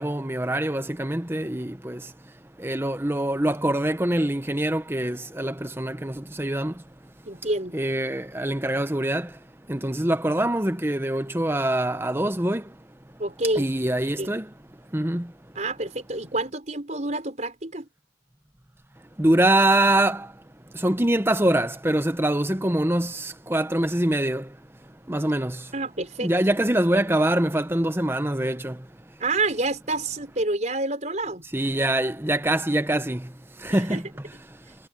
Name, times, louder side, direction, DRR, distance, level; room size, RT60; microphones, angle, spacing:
voice 1, 0.0-2.0 2.6-6.7 7.7-9.3 9.7-12.6 13.6-14.5 14.9-15.3 19.2-20.3 20.7-24.5 25.1-25.6 26.2-28.8 31.5-33.3 33.6-34.0, right 1 dB, 10° right, 1.0 m, -24 dB
voice 2, 7.3-7.8 13.2-13.7 14.2-14.3 15.6-17.9 25.7-26.3 29.2-31.4 33.7-34.0, right 2 dB, 40° right, 5.3 m, -28 dB
head